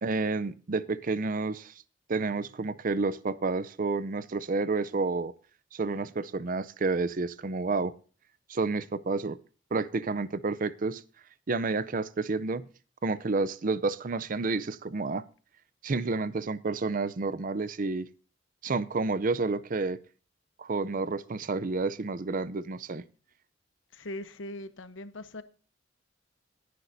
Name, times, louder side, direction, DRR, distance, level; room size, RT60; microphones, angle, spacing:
voice 1, 0.0-1.7 2.1-5.3 5.7-7.9 8.5-9.4 9.7-11.0 11.5-12.7 13.0-15.2 15.8-18.1 18.6-20.0 20.6-23.0, right 3 dB, 45° right, 0.6 m, -30 dB
voice 2, 23.9-25.4, left 1 dB, 90° left, 1.0 m, -40 dB
20.0 x 10.0 x 2.7 m
head